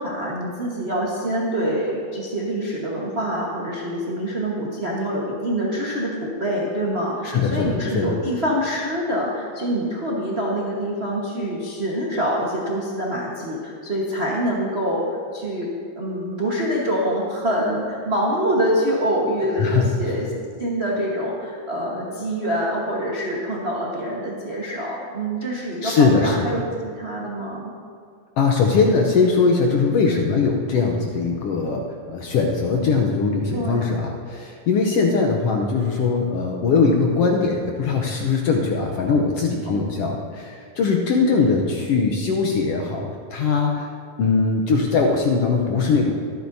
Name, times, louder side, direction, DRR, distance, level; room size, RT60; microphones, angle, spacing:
voice 1, 0.0-15.7 15.9-20.3 20.6-27.7 33.5-34.0 34.9-35.2 39.6-39.9, equal, 50° right, -5 dB, 0.7 m, -25 dB
voice 2, 7.2-8.1 19.6-20.0 25.8-26.6 28.4-43.9 44.2-46.1, left 4 dB, 70° left, 1 dB, 1.5 m, -21 dB
23.5 x 9.1 x 2.7 m, 2.2 s
omnidirectional pair, 3.5 m